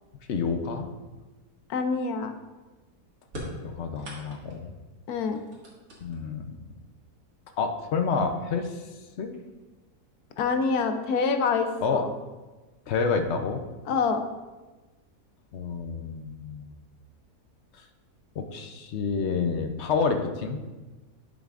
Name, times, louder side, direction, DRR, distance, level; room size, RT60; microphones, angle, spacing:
voice 1, 0.3-0.9 3.6-4.7 6.0-6.5 7.6-8.9 9.2-9.4 11.8-12.0 12.9-13.6 15.5-16.7 18.3-20.6, left 5 dB, 55° left, 6 dB, 0.8 m, -28 dB
voice 2, 1.7-2.3 5.1-5.4 10.4-12.1 13.9-14.2, left 5 dB, 75° left, 6 dB, 1.2 m, -26 dB
sound 1, 3.3-4.7 5.3-6.4 7.5-7.6 8.6-8.7 9.1-9.6, equal, 55° right, 2.2 m, -41 dB
10.5 x 7.5 x 2.5 m, 1.2 s
omnidirectional pair, 1.7 m